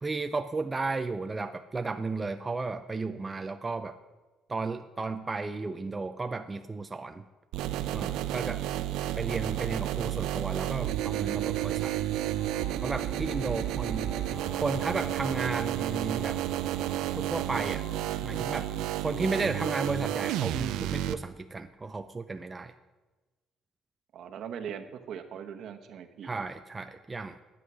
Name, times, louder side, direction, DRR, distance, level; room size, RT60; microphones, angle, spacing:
voice 1, 0.0-4.0 4.5-7.3 7.9-8.6 9.2-11.9 12.8-14.2 14.6-16.4 17.1-17.8 18.2-18.7 19.0-22.7 26.2-27.4, right 3 dB, 20° right, 7 dB, 0.5 m, -33 dB
sound 1, 7.5-21.1, right 13 dB, 85° right, 0.5 m, -31 dB
sound 2, 12.3-18.8, left 3 dB, 60° left, 3.2 m, -48 dB
voice 2, 13.4-14.1 24.1-26.3, right 8 dB, 60° right, 7 dB, 1.1 m, -41 dB
11.0 x 8.2 x 6.1 m, 1.2 s
cardioid pair, 115°, 0 cm